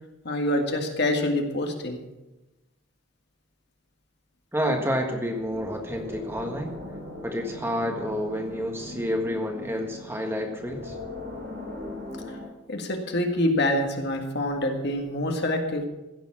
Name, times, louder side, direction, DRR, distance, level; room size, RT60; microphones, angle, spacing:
voice 1, 0.2-2.0 12.3-12.4 12.7-15.8, left 1 dB, 55° left, 3 dB, 1.9 m, -26 dB
voice 2, 4.5-6.7 7.2-11.0, equal, 10° right, 2 dB, 1.6 m, -29 dB
sound 1, 4.6-12.5, left 2 dB, 60° right, 5.1 m, -39 dB
16.0 x 7.2 x 7.3 m, 1.0 s
head